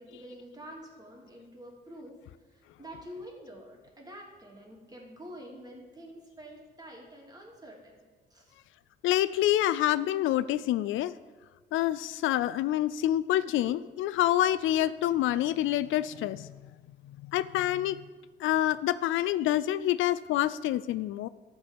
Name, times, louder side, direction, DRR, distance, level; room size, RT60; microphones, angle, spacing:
voice 1, 0.0-2.2 2.5-8.0 8.3-8.6, equal, 20° right, -1 dB, 2.9 m, -47 dB
voice 2, 9.0-11.1 11.7-16.5 17.2-18.0 18.4-21.3, left 13 dB, 80° left, 16 dB, 0.4 m, -27 dB
12.5 x 4.6 x 8.3 m, 1.3 s
cardioid pair, 90°, 20 cm